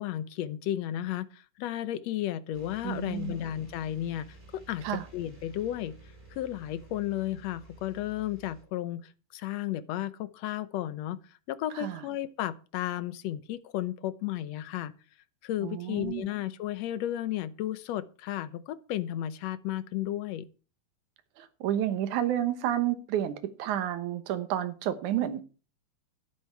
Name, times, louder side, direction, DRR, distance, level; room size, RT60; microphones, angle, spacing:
voice 1, 0.0-4.9 5.1-5.9 6.3-11.2 11.5-14.9 15.4-20.5, left 12 dB, 70° left, 1.9 m, -33 dB
sound 1, 2.5-8.6, right 2 dB, 15° right, 5.2 m, -52 dB
voice 2, 2.8-3.4 4.8-5.0 11.8-12.0 15.6-16.3 21.4-25.4, right 11 dB, 85° right, 2.6 m, -30 dB
12.5 x 11.0 x 4.7 m
omnidirectional pair, 3.4 m